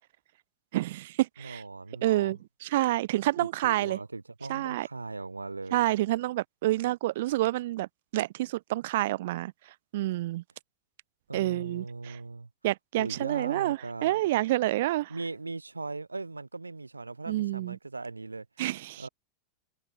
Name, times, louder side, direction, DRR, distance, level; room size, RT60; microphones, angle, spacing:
voice 1, 0.7-1.6 2.0-4.0 4.5-4.9 5.7-9.5 9.9-10.4 11.3-12.2 12.6-15.1 17.3-17.8 18.6-19.1, right 16 dB, 55° right, 0.3 m, -28 dB
voice 2, 1.4-2.4 3.4-5.9 11.3-12.5 13.0-14.2 15.1-18.4 19.0-19.1, right 3 dB, 80° right, 3.3 m, -39 dB
figure-of-eight pair, 90°, 0 cm